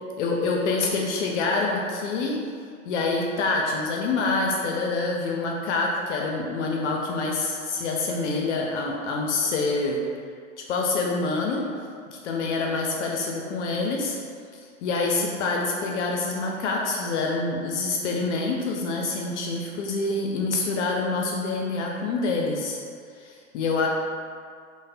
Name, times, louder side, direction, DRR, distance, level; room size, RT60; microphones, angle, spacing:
voice 1, 0.2-2.4 2.9-10.0 10.7-11.6 12.2-14.2 14.5-22.8 23.2-23.9, left 3 dB, 65° left, -1 dB, 0.5 m, -26 dB
3.2 x 2.1 x 2.5 m, 2.2 s
hypercardioid pair, 105°, 39 cm